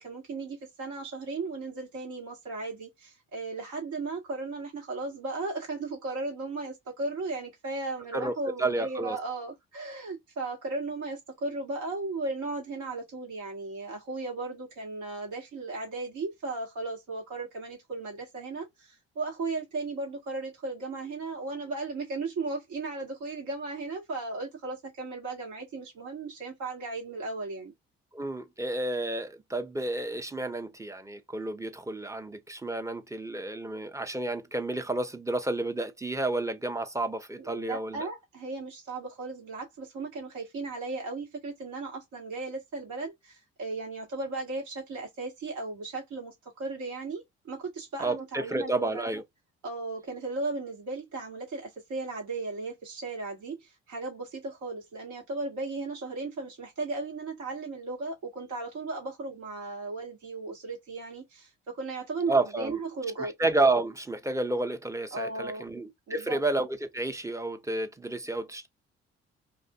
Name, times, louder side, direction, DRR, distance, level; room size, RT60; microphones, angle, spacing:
voice 1, 0.0-27.7 37.4-49.1 49.6-63.3 65.1-65.7 66.1-66.4, right 3 dB, 65° right, 1.6 m, -36 dB
voice 2, 8.1-9.2 28.1-38.1 48.0-49.2 62.3-62.8 63.2-68.7, right 2 dB, 10° right, 0.7 m, -30 dB
2.6 x 2.5 x 2.3 m
hypercardioid pair, 45°, 32 cm